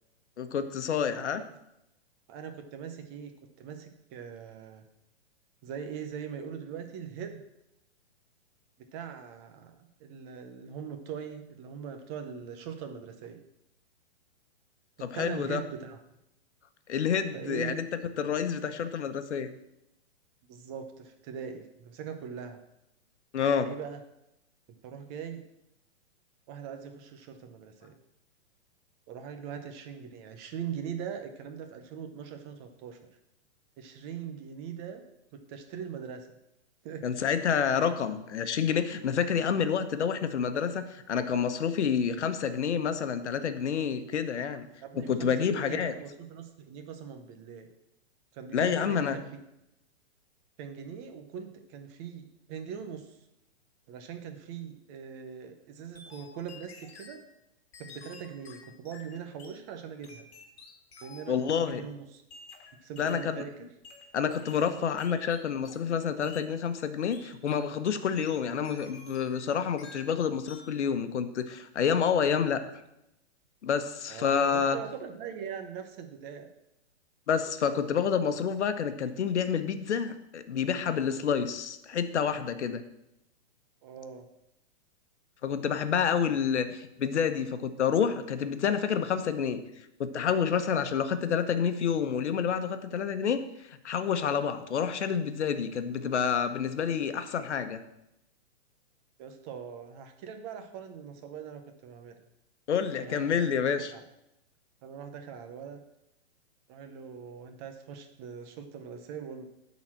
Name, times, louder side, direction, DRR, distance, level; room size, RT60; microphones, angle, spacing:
voice 1, 0.4-1.4 15.0-15.6 16.9-17.8 18.2-19.5 23.3-23.7 37.0-44.7 44.9-45.9 48.5-49.2 61.3-61.8 63.0-63.4 64.1-72.6 73.6-74.8 77.3-82.8 85.4-89.6 90.0-93.4 93.7-97.8 102.7-103.9, left 7 dB, 80° left, 10 dB, 1.1 m, -28 dB
voice 2, 2.3-3.3 3.6-4.8 5.6-7.4 8.9-13.4 15.0-16.0 17.3-17.8 20.5-22.6 23.6-24.0 24.8-25.5 26.5-27.9 29.1-33.0 33.8-35.0 35.3-36.3 36.8-37.1 44.8-47.7 48.3-49.3 50.6-53.2 53.9-57.2 57.8-60.3 61.0-62.2 62.8-63.6 74.1-76.5 83.8-84.3 99.2-102.2 103.1-103.6 103.9-104.0 104.8-105.8 106.7-109.4, right 7 dB, 25° right, 6 dB, 0.8 m, -41 dB
sound 1, 55.9-57.2 57.7-59.6 60.0-61.4 62.3-63.4 63.8-65.9 66.2-66.5 67.1-67.7 68.2-69.5 69.8-70.2 70.5-70.8, left 4 dB, 65° left, 2.1 m, -51 dB
11.0 x 4.2 x 7.3 m, 0.86 s
hypercardioid pair, 155°, 34 cm